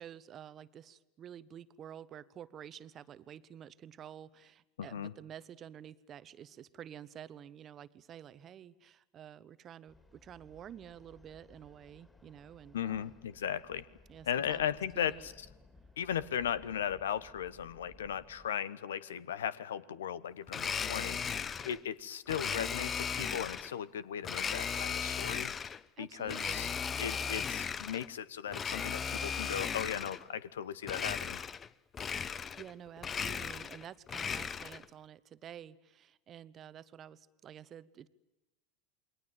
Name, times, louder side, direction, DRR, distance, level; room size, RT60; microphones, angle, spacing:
voice 1, 0.0-13.1 14.1-14.7 14.9-15.3 26.0-26.7 32.6-38.1, right 9 dB, 35° right, 16 dB, 1.2 m, -50 dB
voice 2, 4.8-5.1 12.7-13.8 14.2-15.3 16.0-25.5 26.0-26.7 27.0-31.4, left 9 dB, 70° left, 18 dB, 1.2 m, -37 dB
sound 1, 9.9-18.5, left 2 dB, 10° left, 3.6 m, -60 dB
Domestic sounds home sounds, 20.5-21.8 22.3-23.7 24.2-25.8 26.3-28.1 28.5-30.2 30.8-31.7 31.9-32.7 33.0-34.9, left 7 dB, 25° left, 0.9 m, -36 dB
28.5 x 22.5 x 9.1 m, 1.0 s
figure-of-eight pair, 80°, 0 cm